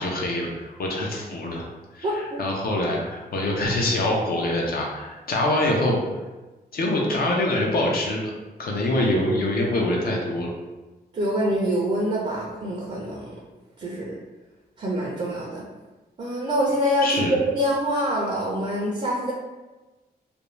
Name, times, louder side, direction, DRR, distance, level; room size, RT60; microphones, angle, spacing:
voice 1, 0.0-1.6 1.9-2.1 2.4-6.0 6.7-8.3 8.6-10.5 17.0-17.3, left 1 dB, 60° left, -1 dB, 0.6 m, -24 dB
voice 2, 2.0-2.4 11.1-13.3 13.8-14.1 14.8-15.6 16.2-19.3, equal, 40° right, -3 dB, 0.5 m, -25 dB
2.6 x 2.2 x 3.1 m, 1.2 s
wide cardioid pair, 110°, 17 cm